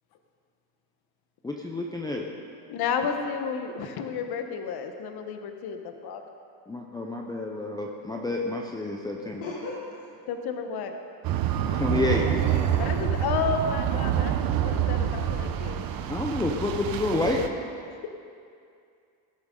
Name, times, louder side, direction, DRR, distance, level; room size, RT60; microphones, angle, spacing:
voice 1, 1.4-2.3 6.7-9.4 11.7-12.3 16.1-17.4, left 2 dB, 10° left, -1 dB, 0.6 m, -29 dB
voice 2, 2.7-6.2 10.3-10.9 12.7-15.8, left 6 dB, 50° left, 6 dB, 1.1 m, -31 dB
voice 3, 9.4-10.1 11.9-12.1 12.6-13.0, left 3 dB, 90° left, -9 dB, 3.1 m, -38 dB
sound 1, 11.2-17.5, right 10 dB, 45° right, 0.8 m, -27 dB
17.0 x 11.5 x 3.8 m, 2.4 s
cardioid pair, 145°, 47 cm